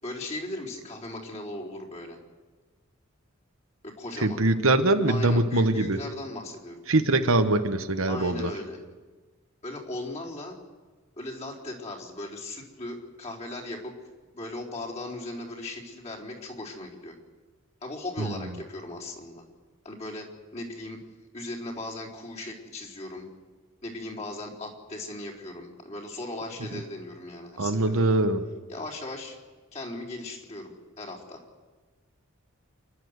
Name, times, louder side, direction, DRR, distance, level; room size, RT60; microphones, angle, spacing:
voice 1, 0.0-2.2 3.8-4.4 5.1-6.8 8.1-8.8 9.6-10.5 11.2-13.9 14.3-17.1 17.8-19.4 19.8-21.0 21.3-23.3 23.8-28.2 28.7-29.4 29.7-30.7 31.0-31.4, left 2 dB, 35° left, -3 dB, 4.2 m, -38 dB
voice 2, 4.2-6.0 6.9-8.5 18.2-18.3 27.6-28.4, right 2 dB, 70° right, 8 dB, 1.2 m, -23 dB
29.0 x 11.5 x 8.2 m, 1.3 s
head